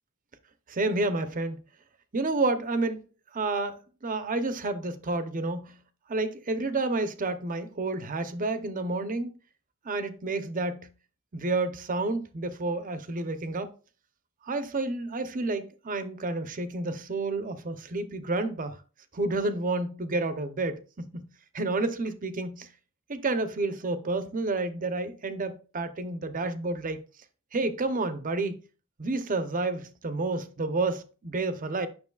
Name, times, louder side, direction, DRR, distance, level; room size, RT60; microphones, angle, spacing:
voice 1, 0.7-1.6 2.1-3.0 3.3-5.7 6.1-9.3 9.9-10.9 11.3-13.7 14.4-18.8 19.1-21.3 21.5-22.7 23.1-27.0 27.5-28.6 29.0-31.9, right 2 dB, 40° right, 0.7 m, -30 dB
9.6 x 6.1 x 2.3 m
head